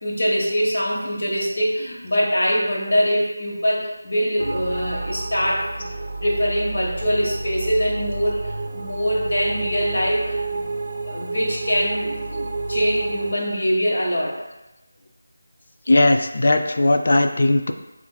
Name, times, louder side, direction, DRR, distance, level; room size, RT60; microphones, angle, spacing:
voice 1, 0.0-5.9 6.2-10.7 11.0-14.4, equal, 65° left, -3 dB, 1.3 m, -23 dB
sound 1, 4.4-13.3, right 3 dB, 65° right, 0.5 m, -29 dB
voice 2, 15.9-17.7, left 2 dB, 45° left, 6 dB, 0.3 m, -18 dB
6.7 x 2.5 x 2.2 m, 0.99 s
figure-of-eight pair, 175°, 0 cm